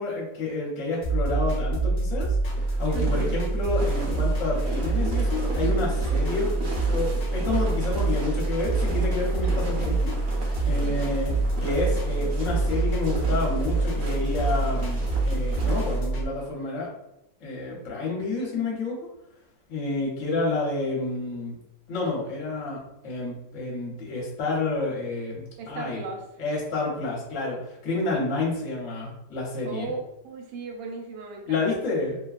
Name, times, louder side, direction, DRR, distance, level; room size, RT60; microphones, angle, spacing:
voice 1, 0.0-2.4 2.8-16.9 17.4-19.0 19.7-21.5 21.9-26.0 26.4-29.9 31.5-32.2, left 3 dB, 50° left, -4 dB, 1.1 m, -29 dB
sound 1, 1.0-16.2, right 2 dB, 80° left, 0.5 m, -26 dB
sound 2, 2.5-16.0, right 2 dB, 65° right, 0.9 m, -38 dB
voice 2, 2.9-3.4 10.8-11.2 25.6-26.2 29.6-30.0 30.2-31.8, right 4 dB, 85° right, 2 dB, 1.2 m, -36 dB
2.8 x 2.2 x 2.4 m, 0.83 s
omnidirectional pair, 1.9 m